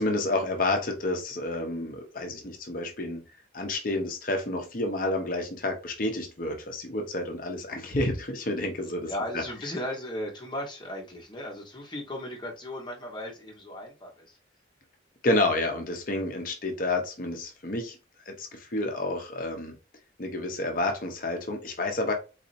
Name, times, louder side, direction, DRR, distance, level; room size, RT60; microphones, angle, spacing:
voice 1, 0.0-3.2 3.5-9.4 15.2-18.0 18.3-19.8 20.2-22.1, left 2 dB, 45° left, 0.7 m, -29 dB
voice 2, 9.0-14.4, left 1 dB, 25° left, 1.2 m, -36 dB
4.1 x 2.7 x 2.6 m
head